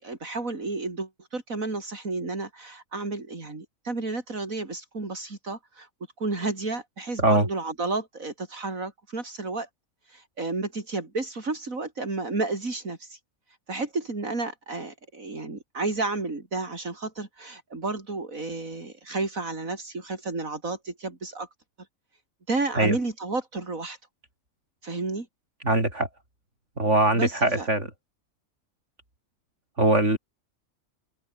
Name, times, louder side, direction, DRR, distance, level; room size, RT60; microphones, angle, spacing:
voice 1, 0.0-5.9 6.2-9.7 10.1-13.2 13.7-21.5 22.5-24.0 24.8-25.3 27.1-27.7, right 3 dB, 70° right, 4.4 m, -32 dB
voice 2, 25.6-26.1 26.8-27.9 29.8-30.2, right 1 dB, 55° right, 7.5 m, -21 dB
omnidirectional pair, 1.5 m